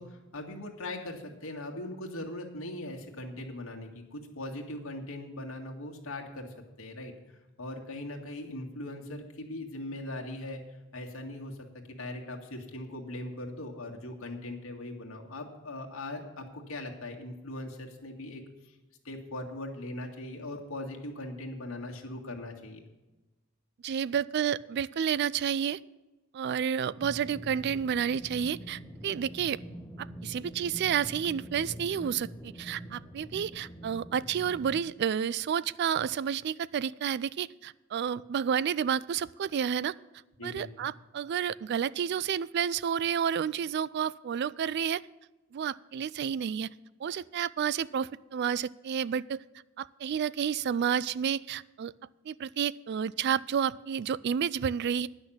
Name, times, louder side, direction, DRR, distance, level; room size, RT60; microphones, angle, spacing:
voice 1, 0.0-7.1 7.6-10.6 10.9-11.6 11.9-18.8 19.0-22.8 40.4-40.9, left 1 dB, 90° left, 1 dB, 1.9 m, -40 dB
voice 2, 23.8-25.8 26.3-29.6 30.0-39.9 40.4-45.0 45.5-46.7 47.0-49.4 49.8-51.9 52.3-55.1, right 8 dB, 55° right, 20 dB, 0.3 m, -30 dB
sound 1, 27.0-34.8, equal, 10° left, 0.7 m, -45 dB
10.5 x 6.3 x 8.5 m, 1.1 s
head